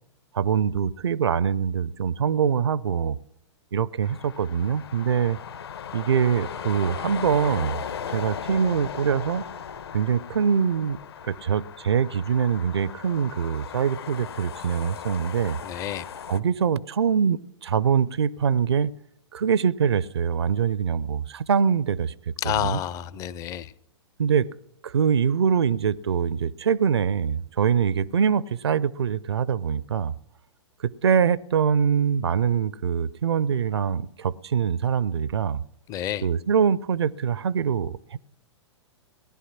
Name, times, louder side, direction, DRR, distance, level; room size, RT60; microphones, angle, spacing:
voice 1, 0.3-3.2 3.7-5.4 5.9-7.8 8.1-9.4 9.9-11.0 11.3-15.6 16.3-18.9 19.3-22.1 22.4-22.8 24.2-24.5 24.8-30.1 31.0-35.6 36.2-38.2, right 7 dB, 60° right, 0.6 m, -24 dB
sound 1, 4.0-16.4, left 7 dB, 60° left, 1.2 m, -37 dB
voice 2, 15.6-16.1 22.4-23.7 35.9-36.3, left 12 dB, 20° left, 0.6 m, -29 dB
18.5 x 11.0 x 5.8 m
figure-of-eight pair, 110°, 15 cm